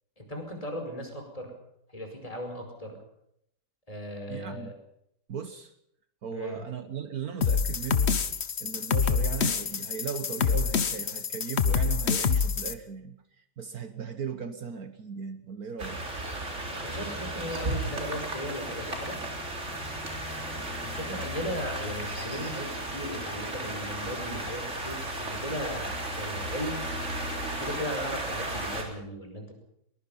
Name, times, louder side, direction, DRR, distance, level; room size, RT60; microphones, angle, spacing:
voice 1, 0.2-1.5 1.9-3.0 3.9-4.7 6.3-6.6 16.8-19.2 20.8-26.8 27.6-29.5, equal, 20° left, 3 dB, 5.2 m, -37 dB
voice 2, 4.3-4.7 5.3-5.7 6.2-8.1 8.6-16.0, right 7 dB, 60° right, 9 dB, 1.7 m, -37 dB
sound 1, 7.4-12.7, left 6 dB, 45° left, 1.2 m, -26 dB
sound 2, 15.8-28.8, right 1 dB, 45° right, 4.0 m, -34 dB
22.5 x 21.0 x 5.6 m, 0.74 s
omnidirectional pair, 1.8 m